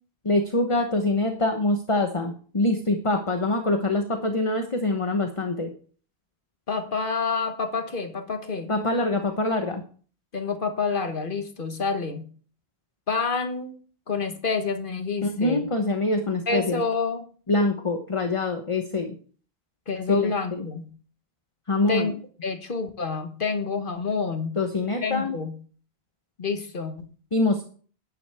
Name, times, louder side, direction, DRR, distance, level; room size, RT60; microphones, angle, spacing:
voice 1, 0.2-5.7 8.7-9.8 15.2-16.8 17.5-19.1 20.1-20.7 21.7-22.1 24.6-25.3 27.3-27.6, left 2 dB, 30° left, 5 dB, 1.0 m, -24 dB
voice 2, 6.7-8.7 10.3-12.3 13.1-13.8 14.1-15.7 16.5-17.2 19.9-20.9 21.9-22.1 22.4-24.6 25.0-25.5 26.4-27.1, left 4 dB, 55° left, 7 dB, 1.4 m, -28 dB
11.0 x 9.8 x 3.5 m, 0.42 s
omnidirectional pair, 1.1 m